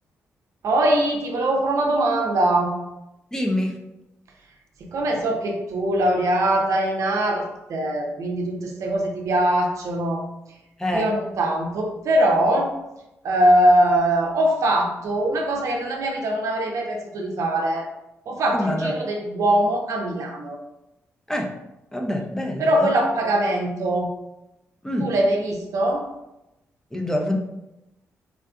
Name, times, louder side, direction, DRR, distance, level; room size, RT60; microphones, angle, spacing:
voice 1, 0.6-2.7 4.8-10.2 10.9-12.7 13.2-17.9 18.3-20.6 22.6-24.1 25.0-26.1, right 1 dB, 70° right, 1 dB, 0.6 m, -22 dB
voice 2, 3.3-3.8 10.8-11.1 18.5-18.9 21.3-21.6 21.9-22.9 24.8-25.1 26.9-27.4, left 1 dB, 10° left, 1 dB, 0.6 m, -25 dB
3.7 x 2.4 x 2.3 m, 0.91 s
supercardioid pair, 55°, 6 cm